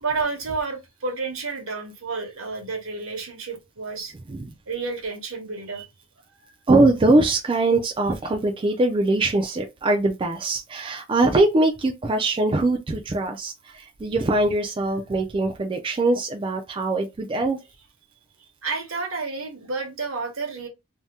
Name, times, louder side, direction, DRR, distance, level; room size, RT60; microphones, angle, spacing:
voice 1, 0.0-4.1 4.7-5.9 18.6-20.7, right 4 dB, 75° right, 0.9 m, -30 dB
voice 2, 6.7-17.6, right 2 dB, 25° right, 0.3 m, -22 dB
2.7 x 2.2 x 3.4 m
head